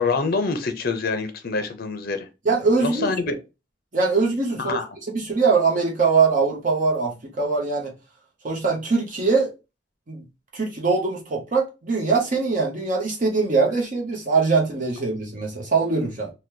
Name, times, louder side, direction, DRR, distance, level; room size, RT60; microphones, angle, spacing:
voice 1, 0.0-2.3 2.8-3.4 4.6-4.9, left 4 dB, 50° left, 0.6 m, -25 dB
voice 2, 2.4-3.1 3.9-4.8 5.1-7.9 8.4-9.5 10.1-10.2 10.5-16.3, right 4 dB, 45° right, 0.8 m, -22 dB
2.9 x 2.2 x 3.5 m
head